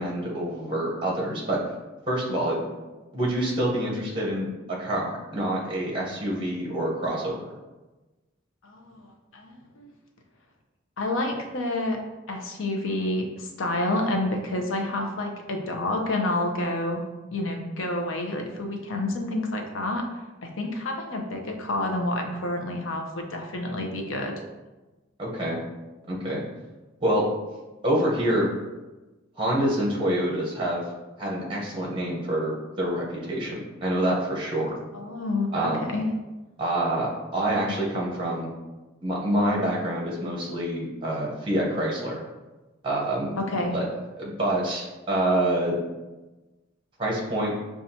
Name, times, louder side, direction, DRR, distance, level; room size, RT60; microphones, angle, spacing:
voice 1, 0.0-1.6 2.1-2.8 3.1-7.4 25.2-25.6 26.1-26.4 27.0-27.3 27.8-28.5 29.4-30.8 31.2-34.7 35.5-35.9 36.6-38.5 39.0-42.2 42.8-43.4 43.7-43.9 44.2-45.8 47.0-47.5, right 1 dB, 25° right, -3 dB, 0.8 m, -26 dB
voice 2, 8.6-9.1 9.3-9.9 11.0-12.0 12.3-17.0 17.3-20.1 20.4-24.3 34.9-36.1 43.4-43.8, left 2 dB, 90° left, 2 dB, 0.6 m, -29 dB
5.5 x 2.3 x 2.7 m, 1.1 s
head